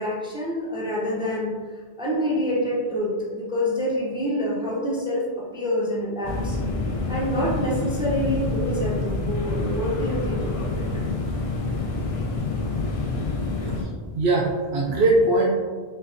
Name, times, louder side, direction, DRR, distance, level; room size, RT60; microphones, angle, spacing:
voice 1, 0.0-1.5 2.0-6.6 7.1-10.9, equal, 5° right, -5 dB, 0.4 m, -27 dB
sound 1, 6.2-13.8, left 3 dB, 50° left, 0.4 m, -27 dB
voice 2, 14.1-15.5, right 2 dB, 70° right, -3 dB, 0.8 m, -21 dB
4.5 x 2.4 x 2.5 m, 1.5 s
omnidirectional pair, 1.1 m